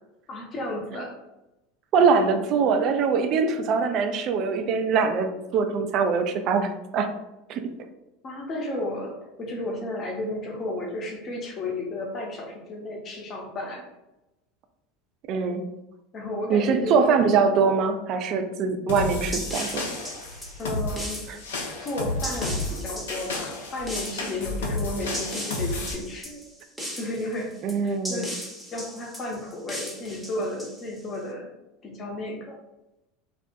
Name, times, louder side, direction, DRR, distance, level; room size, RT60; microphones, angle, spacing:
voice 1, 0.3-1.2 8.2-13.8 16.1-17.1 20.6-21.3 21.8-26.4 26.9-27.5 27.8-28.3 28.7-31.5 31.8-32.6, left 1 dB, 40° left, 0 dB, 0.7 m, -33 dB
voice 2, 1.9-7.1 7.5-7.6 15.3-15.6 16.5-19.9 21.3-21.4 27.6-28.3, right 5 dB, 50° right, 7 dB, 0.3 m, -23 dB
sound 1, 18.9-25.9, left 2 dB, 75° left, 0.5 m, -32 dB
sound 2, 19.0-31.2, equal, ahead, 0.7 m, -38 dB
2.4 x 2.1 x 2.5 m, 0.94 s
figure-of-eight pair, 75°, 0 cm